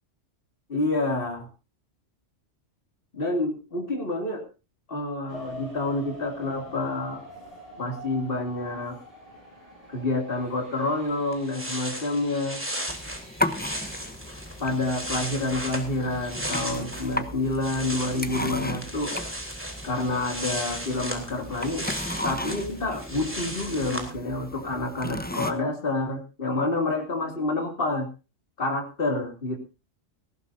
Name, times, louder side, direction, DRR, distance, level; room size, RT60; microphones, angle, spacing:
voice 1, 0.7-1.5 3.1-4.4 4.9-7.2 7.8-9.0 9.9-12.6 14.6-19.2 19.8-21.9 22.2-28.1 28.6-29.6, left 2 dB, 50° left, 3 dB, 2.9 m, -28 dB
sound 1, 5.3-17.9 18.5-18.6 19.1-19.3 19.6-19.7, equal, 30° right, 7.8 m, -47 dB
sound 2, 11.0-11.1 11.3-17.2 17.4-24.1, equal, 10° right, 3.4 m, -36 dB
sound 3, 12.9-25.5, left 1 dB, 10° left, 1.0 m, -35 dB
19.0 x 15.5 x 2.7 m, 0.32 s
omnidirectional pair, 1.2 m